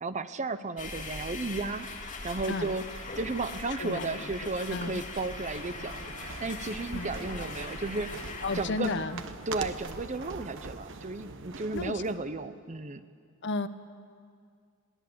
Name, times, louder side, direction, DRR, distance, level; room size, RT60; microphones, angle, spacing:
voice 1, 0.0-1.9 2.2-8.2 8.5-8.9 9.5-13.0, right 3 dB, 35° right, 12 dB, 0.7 m, -34 dB
sound 1, 0.8-8.6, left 3 dB, 40° left, 2.3 m, -40 dB
voice 2, 3.8-5.0 6.9-7.1 8.4-9.2 11.7-12.0 13.4-13.7, left 3 dB, 55° left, 11 dB, 0.9 m, -33 dB
sound 2, 5.1-12.2, right 4 dB, 60° right, 1.0 m, -43 dB
22.0 x 17.5 x 7.9 m, 2.1 s
head